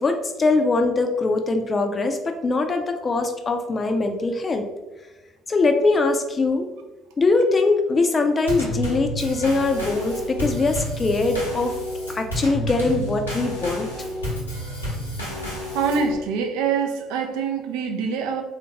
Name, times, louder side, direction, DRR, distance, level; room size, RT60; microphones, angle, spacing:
voice 1, 0.0-4.7 5.5-6.7 7.2-11.7 12.1-13.9, left 3 dB, 30° left, 6 dB, 0.4 m, -22 dB
Drum kit / Snare drum / Bass drum, 8.5-16.2, equal, 85° left, 0.8 m, -30 dB
voice 2, 15.7-18.4, right 5 dB, 65° right, 5 dB, 0.4 m, -25 dB
3.5 x 2.5 x 2.8 m, 1.1 s
figure-of-eight pair, 55°, 0 cm